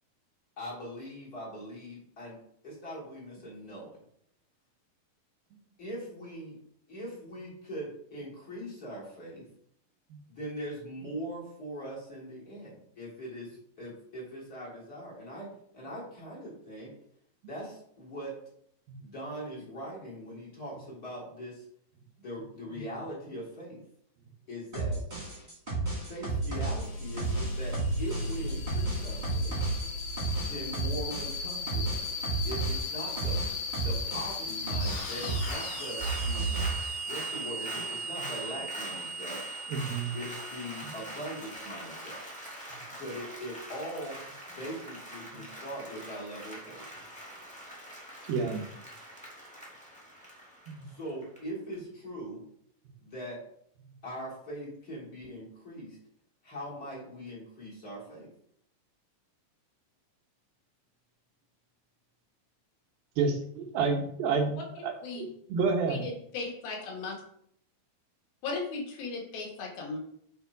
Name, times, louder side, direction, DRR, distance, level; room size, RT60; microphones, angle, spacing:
voice 1, 0.6-2.4 2.6-4.0 5.8-6.6 6.9-9.5 10.3-16.9 17.4-18.4 19.0-21.6 22.2-23.8 24.5-25.0 26.1-29.6 30.4-32.1 32.4-33.4 33.8-36.6 37.1-39.4 40.1-42.2 43.0-46.9 50.9-52.4 53.0-53.4 54.0-56.0 56.4-58.3, equal, 25° left, -6 dB, 3.8 m, -41 dB
sound 1, 24.7-35.5 35.8-36.7, right 3 dB, 15° right, 2.5 m, -32 dB
sound 2, 26.1-42.4, left 1 dB, 55° left, 3.3 m, -37 dB
Applause, 34.8-51.4 51.7-51.8, equal, 5° left, 1.2 m, -44 dB
voice 2, 39.7-40.1 48.3-48.6 50.7-50.8 63.2-66.0, right 4 dB, 80° right, 3 dB, 2.9 m, -29 dB
voice 3, 65.9-67.1 68.4-70.0, left 3 dB, 80° left, 0 dB, 3.5 m, -36 dB
8.5 x 4.9 x 4.7 m, 0.67 s
omnidirectional pair, 4.3 m